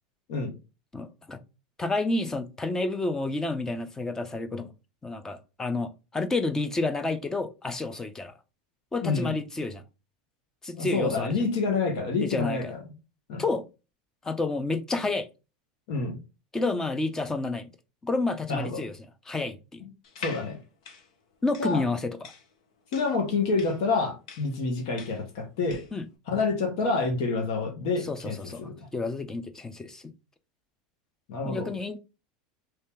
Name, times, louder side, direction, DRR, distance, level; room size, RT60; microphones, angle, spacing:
voice 1, 0.9-1.4 1.8-4.7 5.0-8.3 8.9-9.8 10.6-11.3 12.2-12.7 13.4-13.6 14.2-15.3 16.5-17.7 18.0-19.0 19.3-19.8 21.4-22.3 25.9-26.1 28.1-30.1 31.4-32.0, left 3 dB, 15° left, 0.6 m, -30 dB
voice 2, 9.0-9.3 10.8-12.8 13.3-13.4 15.9-16.2 18.5-18.8 19.8-19.9 20.2-20.6 21.6-21.8 22.9-25.8 26.3-28.7 31.3-31.7, left 4 dB, 70° left, 1.4 m, -28 dB
sound 1, 20.0-26.0, left 5 dB, 85° left, 0.8 m, -44 dB
3.2 x 2.8 x 3.5 m
supercardioid pair, 120°, 4 cm